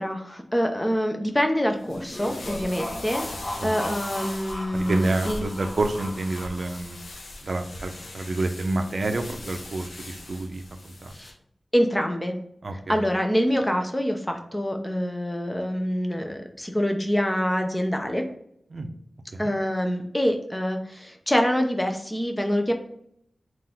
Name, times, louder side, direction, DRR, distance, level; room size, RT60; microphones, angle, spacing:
voice 1, 0.0-3.3 3.6-5.5 11.1-11.3 11.7-12.4 12.9-18.3 19.4-22.7, equal, 15° left, 4 dB, 0.6 m, -25 dB
sound 1, 1.8-11.3, left 2 dB, 70° left, 0.7 m, -40 dB
sound 2, 1.8-6.9, left 1 dB, 40° left, 1.0 m, -37 dB
voice 2, 3.6-3.9 4.7-7.0 7.4-11.2 12.6-13.0 18.7-18.9 19.3-19.5, right 2 dB, 60° right, 6 dB, 0.5 m, -29 dB
3.7 x 2.6 x 4.3 m, 0.71 s
wide cardioid pair, 85°, 0 cm